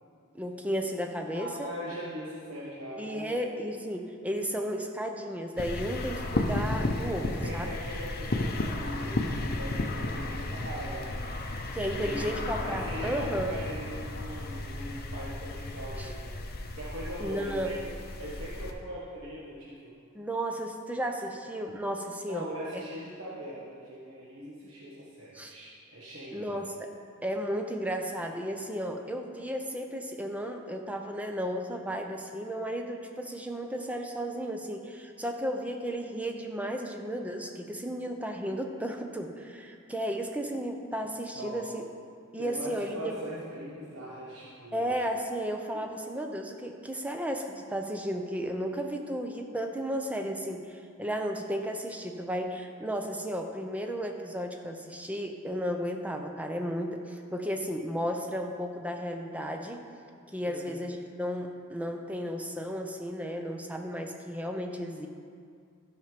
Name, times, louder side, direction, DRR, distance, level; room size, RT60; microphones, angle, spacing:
voice 1, 0.3-1.7 3.0-7.7 11.7-13.6 16.0-16.1 17.2-17.7 20.1-22.5 22.7-22.8 25.3-25.5 26.3-26.9 27.2-41.9 42.3-43.1 44.7-59.8 60.3-65.1, equal, 5° right, 3 dB, 0.6 m, -34 dB
voice 2, 1.2-3.4 7.2-12.3 12.6-16.4 16.8-17.9 18.2-20.0 22.2-26.5 41.3-41.6 42.4-44.9 60.4-60.7, equal, 60° right, -7 dB, 1.5 m, -41 dB
sound 1, 5.6-18.7, left 2 dB, 45° left, 0.7 m, -34 dB
12.5 x 5.8 x 5.2 m, 2.3 s
head